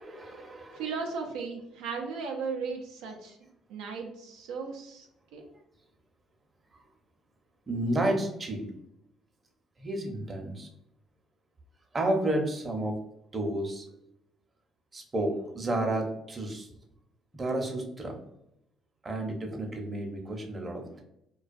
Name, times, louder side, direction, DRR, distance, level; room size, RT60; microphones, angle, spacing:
voice 1, 0.0-0.9 7.7-8.7 9.8-10.7 11.9-12.9 13.3-13.9 14.9-16.7 17.3-18.1 19.0-21.0, right 1 dB, 30° right, 2 dB, 0.6 m, -31 dB
voice 2, 0.7-3.4 3.7-5.1 5.3-5.4, right 5 dB, 85° right, 1 dB, 0.4 m, -36 dB
2.3 x 2.2 x 2.5 m, 0.79 s
supercardioid pair, 70°, 0 cm